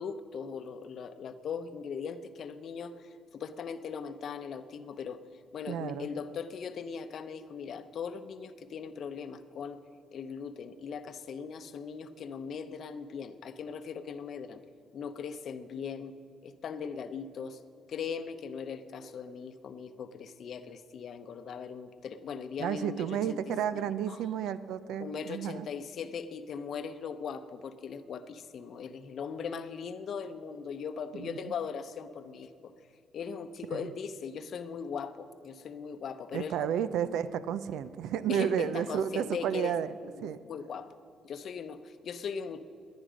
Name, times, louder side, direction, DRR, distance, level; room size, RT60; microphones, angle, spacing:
voice 1, 0.0-5.2 5.5-9.8 10.1-14.6 14.9-16.1 16.4-17.6 17.9-23.4 24.1-24.3 25.0-32.7 33.1-36.7 38.3-39.8 40.0-41.0 41.2-42.6, left 6 dB, 60° left, 11 dB, 0.7 m, -39 dB
voice 2, 5.7-6.1 22.6-25.7 31.1-31.5 33.7-33.9 36.3-39.9 40.2-40.4, right 9 dB, 85° right, 14 dB, 0.5 m, -32 dB
18.5 x 10.5 x 5.1 m, 2.6 s
cardioid pair, 90°, 0 cm